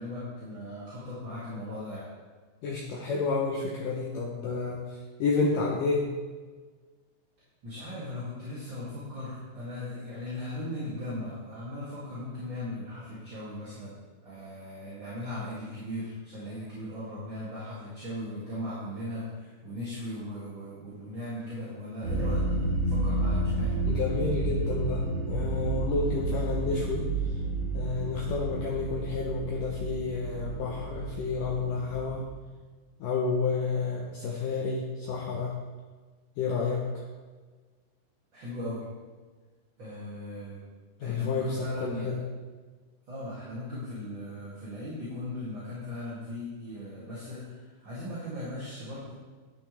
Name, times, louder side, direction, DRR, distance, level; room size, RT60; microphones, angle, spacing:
voice 1, 0.0-2.1 7.6-14.0 14.2-23.7 38.3-38.8 39.8-40.6 41.0-42.1 43.1-49.1, left 1 dB, 30° right, -10 dB, 2.6 m, -38 dB
voice 2, 2.6-6.1 23.9-27.1 27.7-32.3 33.0-35.6 36.4-37.1 41.0-42.2, left 4 dB, 90° left, -2 dB, 1.8 m, -30 dB
sound 1, 22.0-32.3, right 2 dB, 50° right, 2.7 m, -31 dB
10.5 x 10.5 x 3.5 m, 1.4 s
omnidirectional pair, 5.2 m